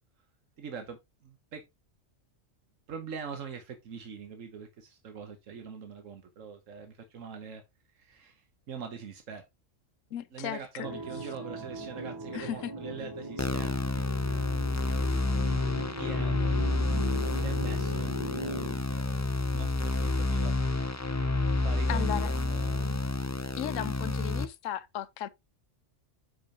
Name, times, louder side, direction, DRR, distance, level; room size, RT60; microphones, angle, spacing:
voice 1, 0.6-1.6 2.9-7.6 7.9-9.5 10.3-15.0 15.9-20.6 21.6-23.0, right 6 dB, 85° right, 1.4 m, -44 dB
voice 2, 10.1-10.9 12.3-12.7 21.9-22.3 23.6-25.3, left 11 dB, 90° left, 1.0 m, -35 dB
sound 1, 10.8-18.7, equal, 20° right, 0.9 m, -39 dB
sound 2, 13.4-24.4, left 2 dB, 20° left, 0.4 m, -29 dB
9.6 x 5.4 x 2.9 m
omnidirectional pair, 1.3 m